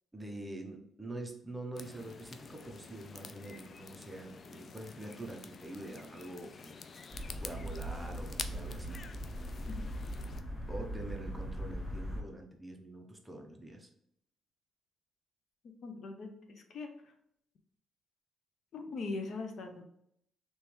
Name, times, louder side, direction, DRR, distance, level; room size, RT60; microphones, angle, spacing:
voice 1, 0.1-7.0 7.4-9.0 10.7-13.9, right 1 dB, 10° right, 2 dB, 0.8 m, -45 dB
sound 1, 1.7-10.4, left 5 dB, 45° left, 0.4 m, -48 dB
sound 2, 7.1-12.2, equal, 20° left, 1.0 m, -40 dB
voice 2, 15.8-17.1 18.7-19.8, left 3 dB, 60° left, 4 dB, 0.8 m, -41 dB
3.4 x 3.0 x 4.4 m, 0.74 s
cardioid pair, 90°, 0 cm